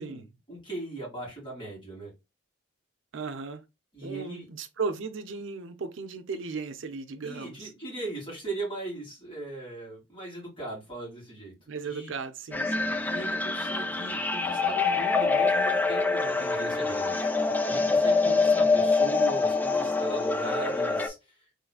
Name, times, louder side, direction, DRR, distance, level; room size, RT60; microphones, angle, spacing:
voice 1, 0.0-2.1 3.9-4.5 7.2-11.5 11.8-12.1 13.0-21.2, right 2 dB, 25° left, 2.4 m, -39 dB
voice 2, 3.1-3.6 4.0-7.7 11.7-13.0 18.2-18.6, right 4 dB, 65° right, 0.5 m, -36 dB
sound 1, 12.5-21.1, left 3 dB, 10° left, 0.3 m, -25 dB
3.7 x 3.1 x 2.4 m
head